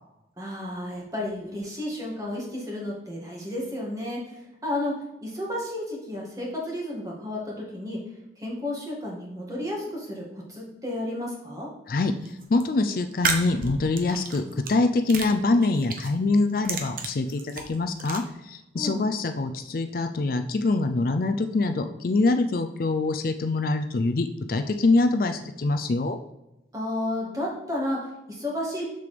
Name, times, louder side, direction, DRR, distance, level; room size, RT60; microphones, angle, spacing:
voice 1, 0.4-4.9 5.2-8.0 8.4-11.7 18.7-19.1 26.7-28.8, left 1 dB, 20° right, -3 dB, 2.0 m, -32 dB
voice 2, 11.9-26.2, left 3 dB, 55° left, 8 dB, 0.4 m, -24 dB
sound 1, 12.2-12.6 13.1-14.7 15.1-16.1 16.5-18.2, right 4 dB, 55° right, 1.0 m, -31 dB
6.8 x 6.8 x 3.3 m, 0.93 s
head